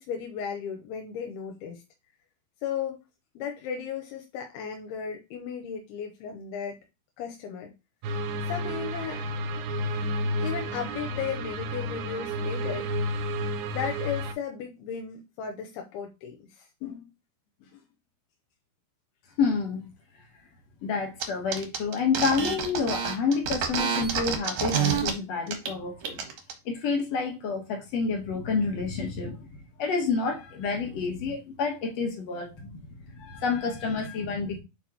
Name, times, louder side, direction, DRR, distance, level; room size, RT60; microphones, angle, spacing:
voice 1, 0.0-1.8 2.6-3.0 3.4-6.8 7.2-7.7 8.5-9.2 10.4-12.9 13.7-17.1 17.6-17.8, left 7 dB, 85° left, 2 dB, 2.8 m, -35 dB
sound 1, 8.0-14.3, equal, 80° right, 2.3 m, -31 dB
voice 2, 19.4-19.9 20.8-26.2 26.7-29.5 29.8-34.6, left 5 dB, 60° left, 2 dB, 1.7 m, -29 dB
sound 2, 21.2-21.3 21.5-25.1 25.5-25.7 26.0-26.5, right 7 dB, 65° right, 1.9 m, -28 dB
7.5 x 4.4 x 2.9 m, 0.26 s
omnidirectional pair, 4.5 m